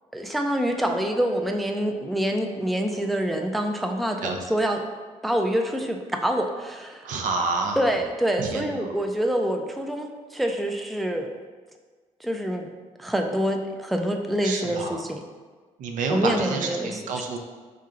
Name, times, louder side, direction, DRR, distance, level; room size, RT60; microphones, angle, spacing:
voice 1, 0.1-4.8 5.2-7.1 7.8-11.3 12.2-12.7 13.0-15.2 16.1-17.0, equal, ahead, 3 dB, 0.3 m, -26 dB
voice 2, 4.2-4.6 7.0-7.8 8.4-8.9 14.4-15.1 15.8-17.4, right 4 dB, 75° right, 3 dB, 0.6 m, -29 dB
4.3 x 3.7 x 2.5 m, 1.4 s
cardioid pair, 90°, 13 cm